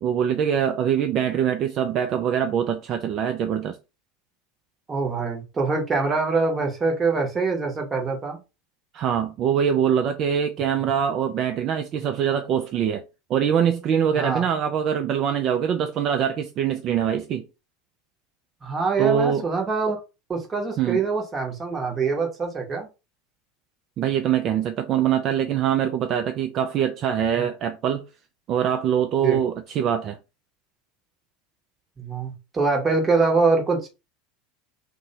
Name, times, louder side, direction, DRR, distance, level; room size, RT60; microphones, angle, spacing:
voice 1, 0.0-3.8 8.9-13.0 13.3-17.4 19.0-19.4 20.8-21.0 24.0-28.0 28.5-30.2, right 8 dB, 40° right, 0.3 m, -23 dB
voice 2, 4.9-8.4 14.1-14.5 18.6-20.0 20.3-22.9 29.2-29.4 32.0-33.9, right 4 dB, 25° right, 0.9 m, -24 dB
2.6 x 2.1 x 2.7 m
figure-of-eight pair, 75°, 0 cm